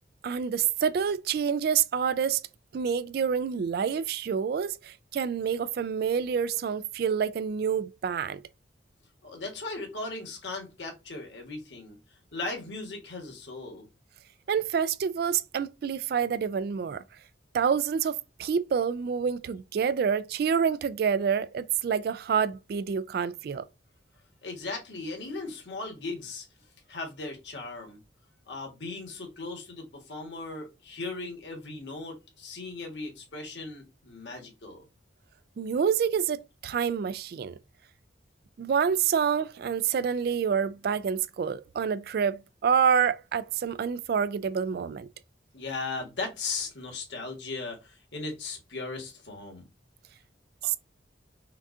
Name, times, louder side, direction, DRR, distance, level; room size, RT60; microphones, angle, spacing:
voice 1, 0.2-2.4 2.7-8.4 14.5-17.0 17.5-23.7 35.6-37.6 38.6-45.1 50.6-50.8, right 7 dB, 55° right, 0.3 m, -27 dB
voice 2, 9.2-12.0 12.3-13.9 24.4-26.5 26.9-28.0 28.5-34.8 45.5-49.7, left 3 dB, 70° left, 1.6 m, -37 dB
5.8 x 2.4 x 2.7 m
head